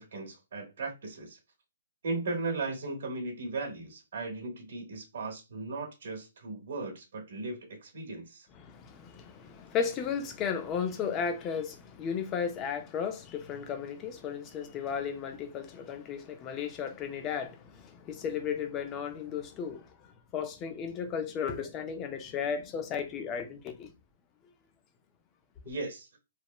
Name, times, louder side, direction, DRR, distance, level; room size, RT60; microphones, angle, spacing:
voice 1, 0.0-1.4 2.0-8.5 25.6-26.1, right 3 dB, 60° right, 0.9 m, -37 dB
voice 2, 8.6-23.9, left 7 dB, 20° left, 0.3 m, -35 dB
3.0 x 2.0 x 2.2 m
hypercardioid pair, 165°, 0 cm